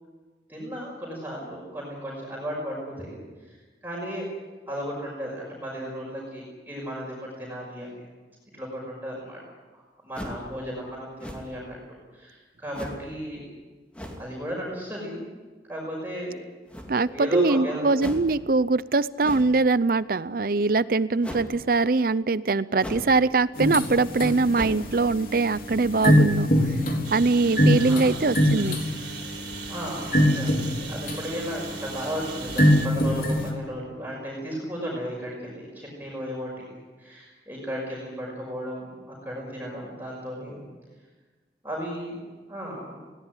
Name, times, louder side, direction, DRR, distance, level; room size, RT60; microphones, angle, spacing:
voice 1, 0.5-3.6 3.8-4.3 4.7-7.9 8.5-9.4 9.7-13.5 14.2-15.3 15.7-16.4 17.1-17.9 27.8-28.2 29.7-36.6 37.0-40.7 41.6-43.0, equal, 10° right, -4 dB, 5.7 m, -35 dB
sound 1, 10.1-10.5 11.2-11.7 12.7-13.1 13.9-14.3 16.7-17.2 18.0-18.3 19.2-19.6 21.2-21.5 22.8-23.2 23.5-23.6 24.5-24.9, equal, 5° left, 2.7 m, -37 dB
voice 2, 16.9-26.5 27.1-28.8, right 3 dB, 55° right, 17 dB, 0.6 m, -22 dB
sound 2, 23.6-33.5, equal, 50° left, 3.7 m, -24 dB
Engine, 27.0-32.9, right 7 dB, 80° right, 3.6 m, -40 dB
21.0 x 18.0 x 9.9 m, 1.3 s
head